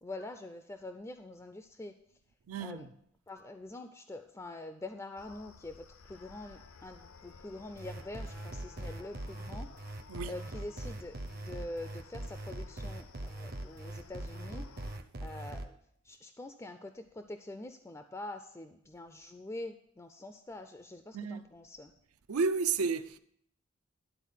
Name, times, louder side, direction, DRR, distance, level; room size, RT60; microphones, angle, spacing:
voice 1, 0.0-1.9 2.6-2.8 3.3-9.7 10.3-14.7 15.2-15.7 16.0-21.9, left 2 dB, 15° left, 0.3 m, -45 dB
voice 2, 2.5-2.9 10.1-10.3 21.1-21.5 22.3-23.2, right 5 dB, 85° right, 0.5 m, -32 dB
sound 1, 5.2-15.0, left 5 dB, 70° left, 0.6 m, -55 dB
sound 2, 7.8-15.6, right 1 dB, 40° right, 0.6 m, -41 dB
11.0 x 4.1 x 7.2 m
head